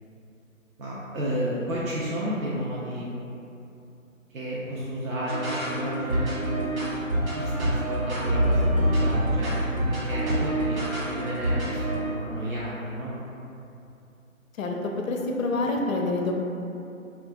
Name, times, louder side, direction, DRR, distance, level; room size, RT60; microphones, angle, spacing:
voice 1, 0.8-3.1 4.3-6.7 7.3-10.8 11.1-13.1, equal, 75° right, -7 dB, 0.6 m, -32 dB
sound 1, 5.3-12.1, right 1 dB, 90° right, 1.0 m, -26 dB
voice 2, 14.6-16.3, left 2 dB, 70° left, 1 dB, 0.5 m, -27 dB
2.9 x 2.4 x 2.3 m, 2.7 s
figure-of-eight pair, 165°, 42 cm